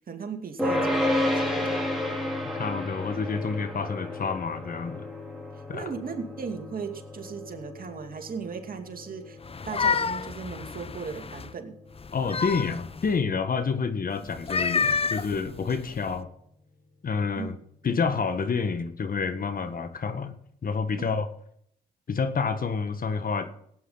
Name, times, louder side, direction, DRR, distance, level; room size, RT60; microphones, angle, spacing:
voice 1, 0.1-1.8 5.7-9.4 9.6-11.8 17.3-17.5 21.0-21.1, right 5 dB, 50° right, 5 dB, 2.5 m, -37 dB
sound 1, 0.6-11.9, left 1 dB, ahead, 4.7 m, -32 dB
voice 2, 2.6-5.0 5.7-5.9 12.1-16.3 17.0-17.6 17.8-20.3 20.6-21.3 22.1-23.5, left 5 dB, 50° left, 9 dB, 1.6 m, -28 dB
sound 2, 9.4-11.5 12.0-13.2 14.3-16.1, left 5 dB, 30° left, 0.8 m, -29 dB
17.0 x 9.5 x 4.0 m, 0.69 s
supercardioid pair, 50°, 19 cm